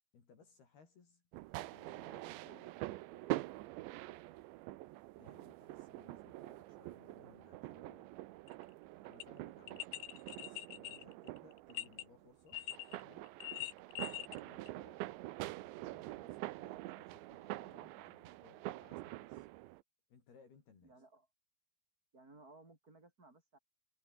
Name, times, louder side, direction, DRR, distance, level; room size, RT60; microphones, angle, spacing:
voice 1, 0.1-1.2 1.7-2.7 5.2-8.1 8.8-10.0 10.3-12.6 13.0-13.4 13.9-19.5 20.1-21.0, left 5 dB, 50° left, 6.0 m, -64 dB
sound 1, 1.3-19.8, right 18 dB, 75° right, 2.8 m, -46 dB
voice 2, 7.4-8.3 20.8-21.3 22.1-23.6, right 2 dB, 20° right, 4.8 m, -62 dB
sound 2, 8.5-8.6 9.2-9.3 9.7-12.0 12.5-13.0 13.3-14.4 14.7-14.8, left 14 dB, 70° left, 3.4 m, -43 dB
omnidirectional pair, 5.9 m